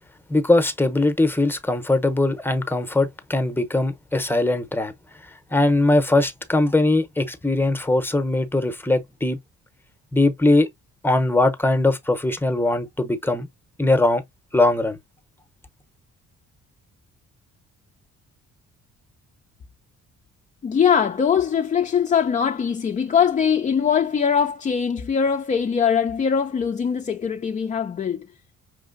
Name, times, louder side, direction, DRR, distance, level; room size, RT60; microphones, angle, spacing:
voice 1, 0.3-4.9 5.5-9.4 10.1-10.7 11.0-13.5 13.8-14.2 14.5-15.0, left 2 dB, 5° left, 0.7 m, -20 dB
voice 2, 20.6-28.3, left 7 dB, 25° left, 0.3 m, -21 dB
4.9 x 3.2 x 2.5 m
cardioid pair, 90°, 30 cm